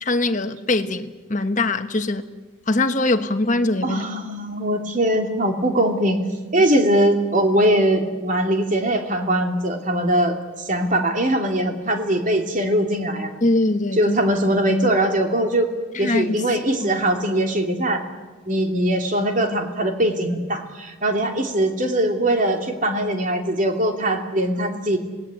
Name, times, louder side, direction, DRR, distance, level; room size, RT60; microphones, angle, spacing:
voice 1, 0.0-2.2 2.7-4.0 13.4-14.2 16.0-16.4 17.0-17.1, left 2 dB, 40° left, 1.3 m, -22 dB
voice 2, 3.8-6.2 6.5-10.4 10.7-13.3 13.9-15.7 16.0-18.0 18.5-25.0, right 1 dB, 40° right, 2.8 m, -21 dB
26.0 x 19.5 x 9.2 m
head